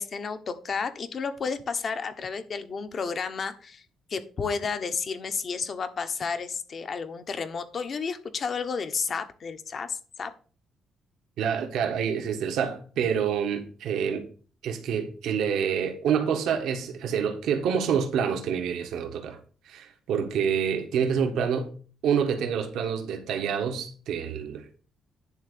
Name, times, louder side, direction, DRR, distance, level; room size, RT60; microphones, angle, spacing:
voice 1, 0.0-3.8 4.1-10.3, left 5 dB, 50° left, 1.2 m, -32 dB
voice 2, 11.4-14.3 14.6-19.4 19.6-21.7 22.0-24.8, right 7 dB, 80° right, 1.5 m, -27 dB
10.5 x 3.7 x 6.8 m
cardioid pair, 90°, 0 cm